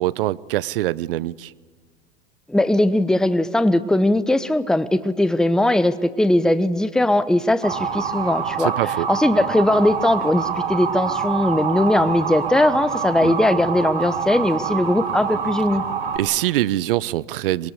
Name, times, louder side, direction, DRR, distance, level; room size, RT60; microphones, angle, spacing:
voice 1, 0.0-1.5 8.6-9.1 13.2-13.3 16.1-17.7, right 15 dB, 65° right, 0.8 m, -23 dB
voice 2, 2.5-8.7 9.1-15.8, left 1 dB, ahead, 1.0 m, -19 dB
Motor vehicle (road) / Siren, 7.6-16.2, right 6 dB, 80° right, 2.9 m, -26 dB
24.5 x 21.5 x 8.1 m
hypercardioid pair, 90°, 30 cm